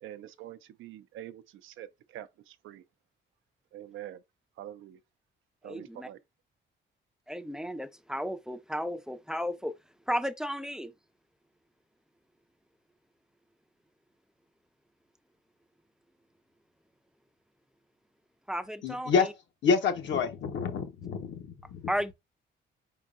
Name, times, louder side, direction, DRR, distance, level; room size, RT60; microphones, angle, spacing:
voice 1, 0.0-2.8 3.7-4.2 4.6-5.0 5.6-6.2, right 12 dB, 85° right, 0.5 m, -45 dB
voice 2, 5.6-6.1 7.3-9.7 10.1-10.9 18.5-19.1 21.9-22.1, equal, 5° right, 0.4 m, -33 dB
voice 3, 18.8-19.3 19.6-21.9, left 5 dB, 65° left, 0.9 m, -28 dB
4.6 x 3.7 x 2.4 m
cardioid pair, 90°, 20 cm